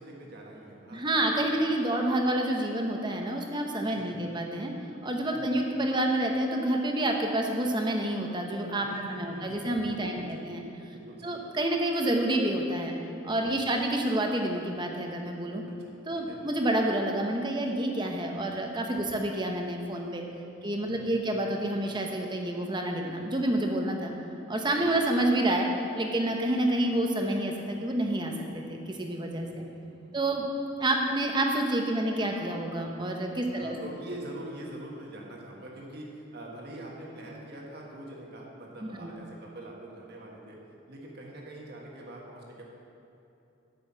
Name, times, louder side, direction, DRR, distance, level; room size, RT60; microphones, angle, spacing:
voice 1, 0.0-1.4 3.8-4.4 5.3-5.6 8.8-10.5 10.9-11.4 13.4-13.7 15.8-16.4 20.9-21.2 24.8-25.0 29.4-30.3 33.5-40.6 40.9-42.6, right 1 dB, 55° right, -2 dB, 1.5 m, -44 dB
voice 2, 0.9-4.7 5.0-10.6 11.2-12.9 13.2-15.6 16.1-20.2 20.6-24.1 24.5-25.7 25.9-29.5 30.1-30.5 30.8-33.8 38.8-39.1, right 1 dB, 25° right, 2 dB, 0.9 m, -28 dB
7.9 x 6.3 x 7.4 m, 2.9 s
head